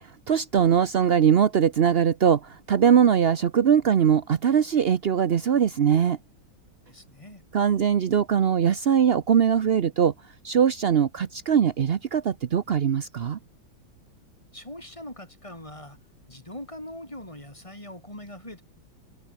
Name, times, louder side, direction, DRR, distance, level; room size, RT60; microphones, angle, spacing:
voice 1, 0.3-6.2 7.5-10.1 10.4-13.4, right 8 dB, 75° right, 0.5 m, -21 dB
voice 2, 6.9-7.4 14.5-16.0 16.3-18.6, left 1 dB, 15° left, 4.7 m, -41 dB
omnidirectional pair, 2.2 m